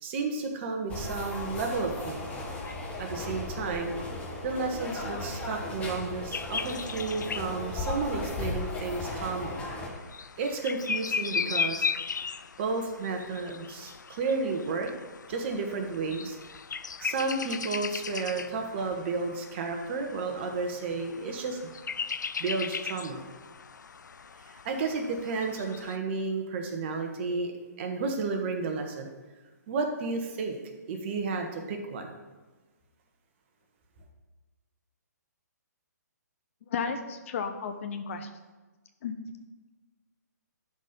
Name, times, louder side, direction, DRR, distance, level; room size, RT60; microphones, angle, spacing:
voice 1, 0.0-2.3 3.0-3.9 4.4-9.6 10.4-11.9 12.6-14.9 15.3-16.4 17.0-21.6 22.4-23.2 24.6-27.5 27.8-29.1 29.7-30.6 30.9-32.1, right 4 dB, 40° right, 3 dB, 1.3 m, -32 dB
sound 1, 0.9-9.9, left 2 dB, 10° left, 1.3 m, -36 dB
sound 2, 6.3-26.0, left 6 dB, 85° left, 0.4 m, -37 dB
voice 2, 36.6-38.3 39.0-39.2, left 6 dB, 45° left, 7 dB, 0.9 m, -33 dB
11.5 x 4.4 x 5.2 m, 1.3 s
hypercardioid pair, 145°, 10 cm